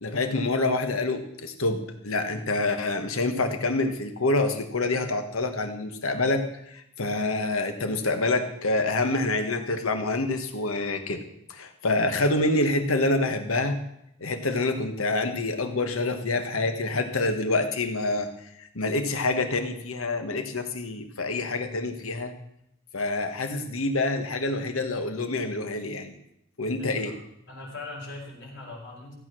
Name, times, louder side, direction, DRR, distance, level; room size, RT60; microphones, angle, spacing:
voice 1, 0.0-11.2 11.5-13.8 14.2-22.3 22.9-26.1 26.6-27.1, left 2 dB, 80° left, 7 dB, 1.4 m, -27 dB
voice 2, 26.8-27.2 27.5-29.1, left 2 dB, 55° left, -3 dB, 5.1 m, -40 dB
15.0 x 8.2 x 6.2 m, 0.78 s
head